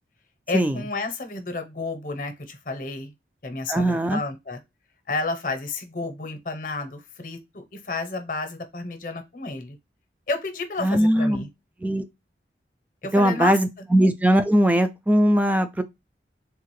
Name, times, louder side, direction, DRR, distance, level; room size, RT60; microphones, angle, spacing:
voice 1, 0.5-3.1 3.4-4.6 5.1-9.8 10.3-11.5 13.0-13.6, left 3 dB, 45° left, 0.7 m, -31 dB
voice 2, 3.7-4.2 10.8-11.4 11.8-12.0 13.1-15.8, equal, 10° right, 0.3 m, -20 dB
3.6 x 2.4 x 3.0 m
head